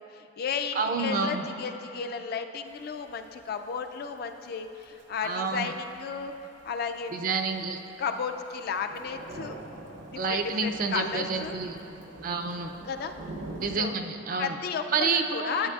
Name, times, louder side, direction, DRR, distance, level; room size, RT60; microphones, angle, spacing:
voice 1, 0.0-6.3 6.6-7.1 8.0-9.6 10.1-11.6 12.8-13.1 13.8-14.0 14.4-15.7, left 5 dB, 50° left, 7 dB, 0.3 m, -33 dB
voice 2, 0.8-1.4 5.2-5.7 7.1-7.8 10.2-11.8 12.2-12.7 13.6-14.5 14.9-15.7, right 4 dB, 45° right, 5 dB, 0.4 m, -29 dB
Thunder / Rain, 2.7-13.8, right 2 dB, 75° right, 0.7 m, -45 dB
11.0 x 7.9 x 2.3 m, 2.9 s
head